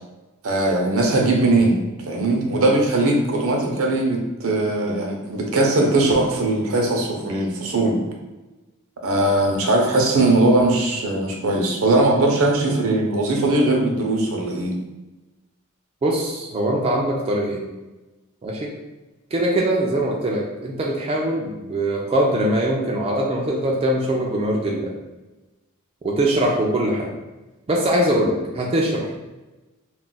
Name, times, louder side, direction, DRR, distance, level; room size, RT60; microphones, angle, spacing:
voice 1, 0.4-1.8 2.1-8.0 9.0-14.8, right 2 dB, 70° right, 1 dB, 0.6 m, -20 dB
voice 2, 16.0-17.7 18.4-18.7 19.3-24.9 26.0-27.1 27.7-29.1, right 1 dB, 25° right, -2 dB, 0.3 m, -22 dB
2.4 x 2.1 x 3.8 m, 1.1 s
head